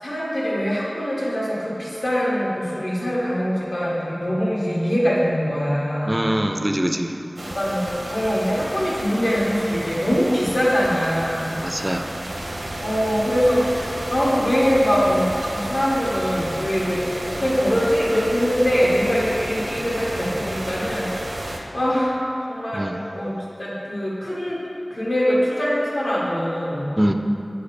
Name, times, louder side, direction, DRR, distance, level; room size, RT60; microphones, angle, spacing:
voice 1, 0.0-6.4 7.5-11.6 12.8-13.6 14.1-21.1 21.7-22.2 22.5-22.8 23.1-23.3 23.6-24.6 24.9-26.9, equal, 90° left, -7 dB, 1.5 m, -22 dB
voice 2, 6.0-7.2 11.6-12.2 22.7-23.0 27.0-27.1, equal, 25° right, 5 dB, 0.3 m, -23 dB
sound 1, 7.4-21.6, right 1 dB, 75° right, 0.7 m, -31 dB
7.9 x 3.3 x 4.1 m, 2.7 s
wide cardioid pair, 45°, 0 cm